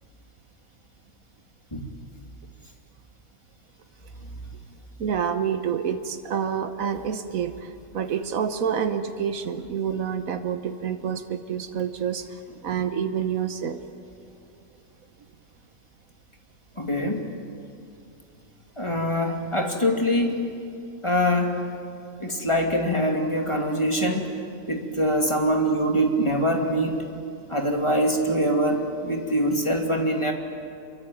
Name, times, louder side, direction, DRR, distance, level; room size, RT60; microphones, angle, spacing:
voice 1, 5.0-13.8, right 7 dB, 90° right, 8 dB, 1.5 m, -28 dB
voice 2, 16.8-17.3 18.8-20.4 21.0-21.8 22.2-24.3 24.7-27.0 27.5-30.3, equal, 20° left, 1 dB, 2.7 m, -24 dB
27.0 x 24.0 x 9.2 m, 2.7 s
omnidirectional pair, 1.4 m